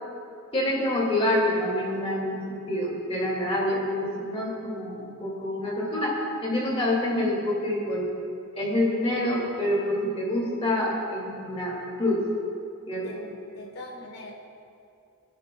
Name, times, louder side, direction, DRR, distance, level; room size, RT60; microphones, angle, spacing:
voice 1, 0.5-8.0 8.6-12.2 12.9-13.2, left 1 dB, 25° left, -3 dB, 2.3 m, -27 dB
voice 2, 13.5-14.3, left 1 dB, 80° left, -1 dB, 3.2 m, -41 dB
28.0 x 10.5 x 2.3 m, 2.6 s
head